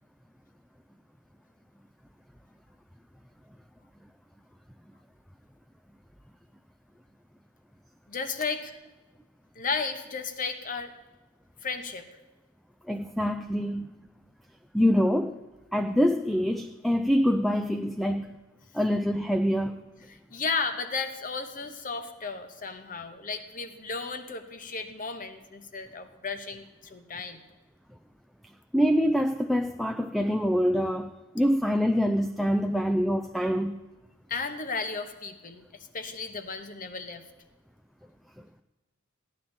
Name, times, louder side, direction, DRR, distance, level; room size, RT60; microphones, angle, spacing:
voice 1, 8.1-8.8 9.5-10.9 11.6-12.1 20.1-27.4 34.3-37.2, left 4 dB, 40° left, 1.0 m, -34 dB
voice 2, 12.9-13.9 14.7-15.4 15.7-18.3 18.7-19.8 28.7-33.8, equal, ahead, 0.4 m, -25 dB
15.5 x 10.5 x 4.4 m
head